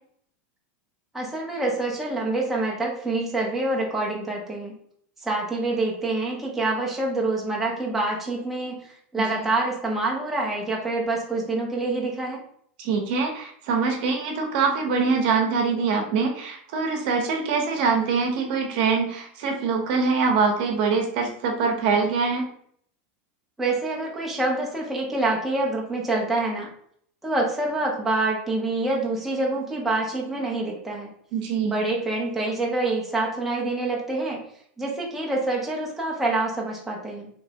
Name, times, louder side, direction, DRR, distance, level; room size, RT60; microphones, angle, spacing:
voice 1, 1.1-4.7 5.2-12.4 23.6-26.7 27.2-31.1 31.6-34.4 34.8-37.3, right 2 dB, 5° right, -3 dB, 0.5 m, -26 dB
voice 2, 9.2-9.5 12.8-22.5 31.3-31.7, right 5 dB, 50° right, 2 dB, 0.8 m, -24 dB
3.2 x 3.0 x 2.7 m, 0.64 s
supercardioid pair, 175°, 6 cm